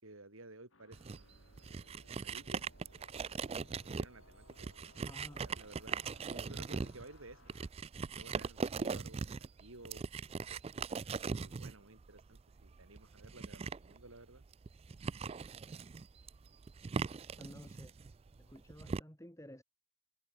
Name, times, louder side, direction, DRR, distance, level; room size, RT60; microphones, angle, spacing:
voice 1, 0.0-1.4 1.8-2.6 4.0-4.7 5.2-5.9 6.3-7.4 8.1-10.0 11.3-14.4, right 2 dB, 85° right, 5.1 m, -55 dB
sound 1, 0.7-7.7, left 3 dB, 70° left, 5.7 m, -65 dB
sound 2, 0.9-19.0, right 5 dB, 30° right, 0.3 m, -41 dB
voice 2, 5.1-5.4 17.4-17.9 18.4-19.6, equal, 15° left, 4.1 m, -53 dB
head